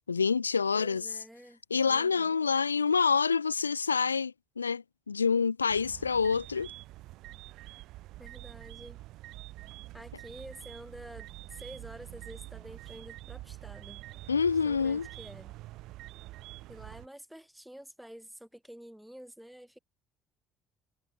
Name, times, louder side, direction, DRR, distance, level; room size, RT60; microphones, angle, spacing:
voice 1, 0.1-1.1 1.7-6.7 14.3-15.1, left 5 dB, 85° left, 0.6 m, -27 dB
voice 2, 0.7-2.4 8.2-9.0 9.9-14.0 14.6-15.5 16.7-19.8, equal, 5° right, 5.8 m, -49 dB
sound 1, 5.7-17.1, right 17 dB, 60° right, 1.0 m, -46 dB
figure-of-eight pair, 50°, 0 cm